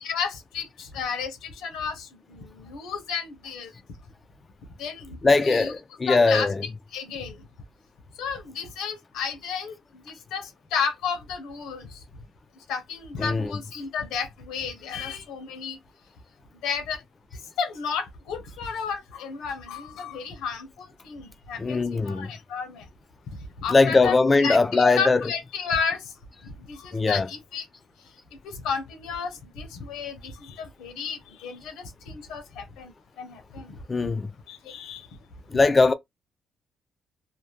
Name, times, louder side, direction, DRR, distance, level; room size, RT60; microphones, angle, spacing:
voice 1, 0.0-3.7 4.8-5.7 6.1-6.5 6.9-7.5 8.2-12.0 12.7-15.8 16.6-17.0 17.3-22.9 23.3-24.1 24.4-26.1 26.4-27.7 28.0-28.1 28.4-34.1 34.5-35.1, left 6 dB, 90° left, 0.9 m, -32 dB
voice 2, 5.2-6.6 13.2-13.6 21.6-22.3 23.7-25.2 26.9-27.3 33.9-34.3 35.5-35.9, left 3 dB, 25° left, 0.3 m, -20 dB
2.7 x 2.1 x 3.2 m
cardioid pair, 90°, 0 cm